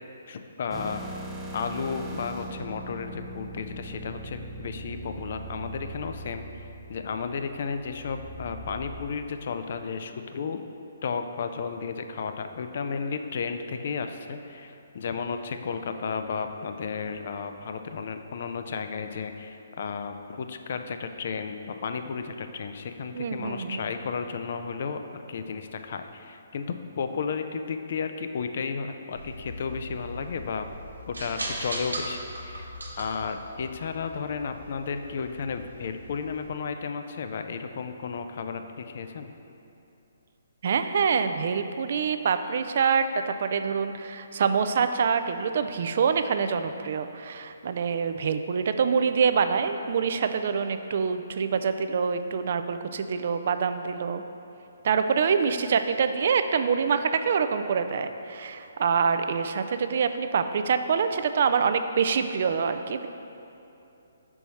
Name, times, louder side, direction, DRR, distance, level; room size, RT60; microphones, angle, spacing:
voice 1, 0.3-1.0 1.5-10.6 11.0-30.7 31.1-39.3, left 5 dB, 55° left, 7 dB, 0.4 m, -33 dB
sound 1, 0.7-9.1, right 1 dB, 5° right, 0.5 m, -40 dB
voice 2, 23.1-23.9 40.6-54.2 54.8-63.1, right 6 dB, 55° right, 9 dB, 0.3 m, -25 dB
sound 2, 29.1-36.5, right 1 dB, 85° right, 1.0 m, -39 dB
5.5 x 4.5 x 4.2 m, 2.8 s
figure-of-eight pair, 135°, 0 cm